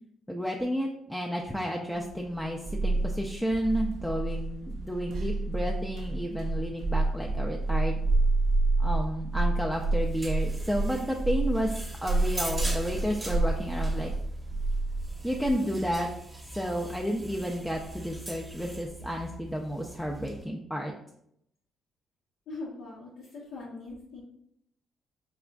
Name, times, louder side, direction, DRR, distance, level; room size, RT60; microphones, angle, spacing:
voice 1, 0.3-8.0 8.8-14.1 15.2-16.1 16.5-20.9, equal, ahead, -1 dB, 0.4 m, -31 dB
sound 1, 2.1-15.5, right 2 dB, 75° right, 0.4 m, -29 dB
sound 2, 9.7-20.4, right 1 dB, 15° right, 0.8 m, -41 dB
voice 2, 22.5-24.2, left 3 dB, 85° left, -7 dB, 0.8 m, -41 dB
4.9 x 2.4 x 2.2 m, 0.74 s
cardioid pair, 90°, 0 cm